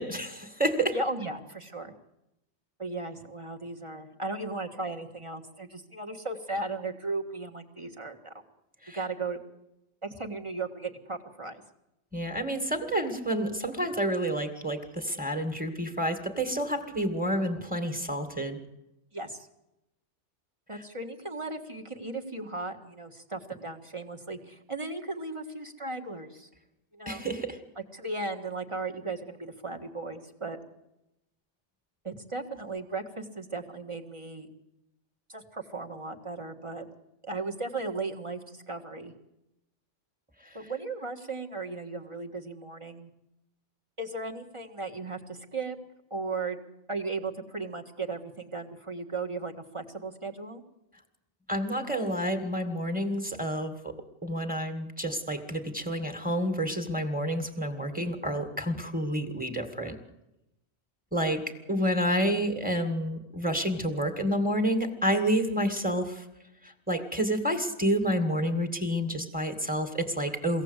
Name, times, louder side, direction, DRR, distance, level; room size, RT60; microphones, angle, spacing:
voice 1, 0.0-1.0 8.8-9.0 12.1-18.6 27.1-27.6 51.5-53.9 54.2-60.0 61.1-66.2 66.6-70.6, equal, 5° right, 7 dB, 2.2 m, -29 dB
voice 2, 0.9-1.9 2.8-8.3 8.9-9.4 10.0-11.6 19.1-19.5 20.7-26.5 26.9-27.2 27.7-30.6 32.0-34.5 35.3-36.9 37.2-39.1 40.5-43.1 44.0-45.8 46.1-46.6 46.9-50.6, right 3 dB, 25° right, 3 dB, 1.8 m, -36 dB
23.5 x 17.0 x 8.2 m, 0.91 s
omnidirectional pair, 1.3 m